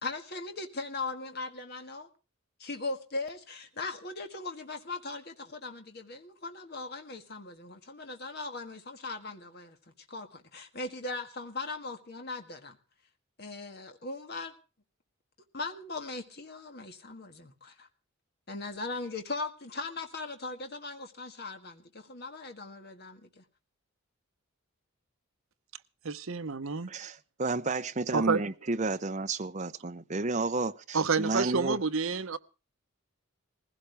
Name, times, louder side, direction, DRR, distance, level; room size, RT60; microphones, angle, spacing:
voice 1, 0.0-2.1 2.6-12.8 13.4-14.5 15.5-17.9 18.5-23.4, left 3 dB, 45° left, 1.7 m, -39 dB
voice 2, 26.0-26.9 28.1-28.4 30.9-32.4, right 4 dB, 65° right, 0.9 m, -29 dB
voice 3, 26.9-31.8, right 3 dB, 30° right, 0.7 m, -31 dB
20.0 x 16.0 x 3.4 m
head